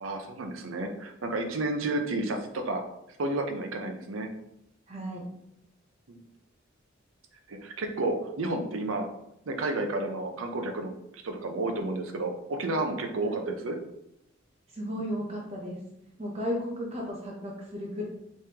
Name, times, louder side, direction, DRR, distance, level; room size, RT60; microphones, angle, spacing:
voice 1, 0.0-2.8 3.2-4.3 6.1-6.2 7.5-9.1 9.5-10.9 11.2-13.8, right 2 dB, 85° right, 5 dB, 0.6 m, -31 dB
voice 2, 4.9-5.3 13.2-13.4 14.7-15.8 16.2-18.0, equal, 30° right, -1 dB, 0.7 m, -34 dB
3.5 x 3.2 x 2.8 m, 0.81 s
head